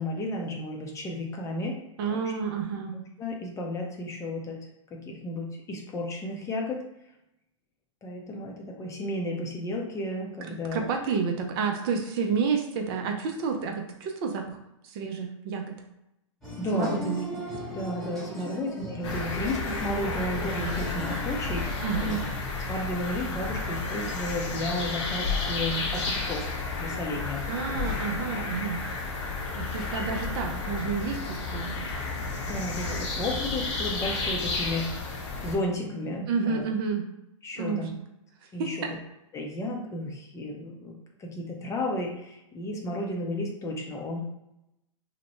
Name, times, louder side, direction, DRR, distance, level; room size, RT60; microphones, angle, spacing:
voice 1, 0.0-1.8 2.1-2.2 3.2-4.6 5.1-6.8 8.0-10.8 16.6-17.1 17.7-22.1 22.7-27.8 32.4-35.1 35.4-36.6 37.4-37.9 38.5-38.8 39.3-44.2, left 1 dB, 20° left, 0 dB, 0.5 m, -33 dB
voice 2, 2.0-3.0 10.5-14.6 14.8-15.7 16.7-17.2 18.5-18.6 21.8-22.2 27.5-28.8 29.5-31.9 36.3-37.1 37.6-37.9 38.6-38.9, right 5 dB, 50° right, 3 dB, 0.5 m, -30 dB
sound 1, 16.4-22.3, equal, ahead, 1.0 m, -38 dB
sound 2, 19.0-35.6, left 3 dB, 60° left, 0.8 m, -32 dB
2.8 x 2.1 x 3.0 m, 0.87 s
hypercardioid pair, 110°, 17 cm